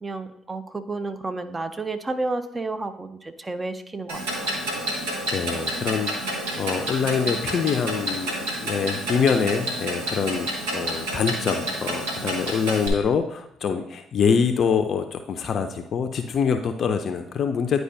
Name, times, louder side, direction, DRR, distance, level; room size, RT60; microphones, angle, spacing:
voice 1, 0.0-4.5, right 2 dB, 25° right, 9 dB, 0.7 m, -31 dB
Clock, 4.1-12.9, right 1 dB, 80° right, 1.2 m, -29 dB
voice 2, 5.3-8.3 8.6-17.8, left 6 dB, 50° left, 6 dB, 0.4 m, -25 dB
10.0 x 4.7 x 2.7 m, 0.76 s
hypercardioid pair, 50°, 0 cm